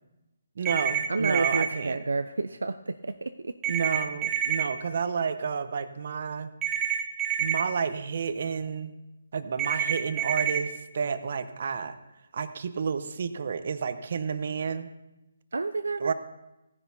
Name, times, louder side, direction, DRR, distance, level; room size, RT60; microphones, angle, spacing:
voice 1, 0.6-2.0 3.7-6.5 7.4-8.9 9.3-12.0 12.3-14.9 16.0-16.1, right 6 dB, 55° right, 12 dB, 0.7 m, -30 dB
sound 1, 0.7-1.7 3.6-4.6 6.6-7.6 9.6-10.6, right 9 dB, 15° right, 1.2 m, -27 dB
voice 2, 1.1-3.5 15.5-16.1, right 3 dB, 80° right, 10 dB, 0.4 m, -30 dB
16.0 x 10.0 x 2.7 m, 0.97 s
figure-of-eight pair, 150°, 0 cm